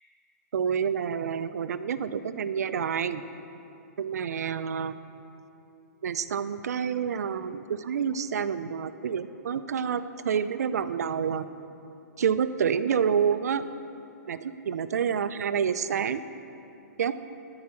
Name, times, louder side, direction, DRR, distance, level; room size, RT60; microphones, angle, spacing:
voice 1, 0.5-3.2 4.0-4.9 6.0-11.5 12.2-13.6 14.3-16.2 17.0-17.1, right 7 dB, 60° right, 12 dB, 0.4 m, -28 dB
13.5 x 4.7 x 6.0 m, 2.9 s
hypercardioid pair, 180°, 10 cm